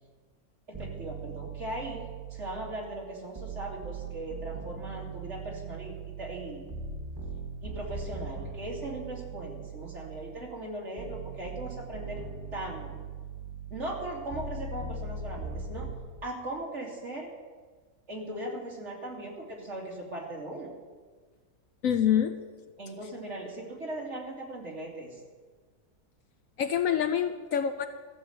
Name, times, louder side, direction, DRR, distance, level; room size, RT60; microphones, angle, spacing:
sound 1, 0.7-2.9 3.4-10.5 11.0-16.0, right 4 dB, 15° right, 1.9 m, -40 dB
voice 1, 0.7-6.7 7.6-12.2 12.5-12.9 13.7-15.9 16.2-17.3 18.1-20.7 22.8-25.2, right 1 dB, 45° right, -2 dB, 2.9 m, -39 dB
voice 2, 21.8-22.3 26.6-27.9, left 9 dB, 70° left, 9 dB, 0.9 m, -26 dB
14.5 x 7.3 x 7.9 m, 1.4 s
omnidirectional pair, 1.7 m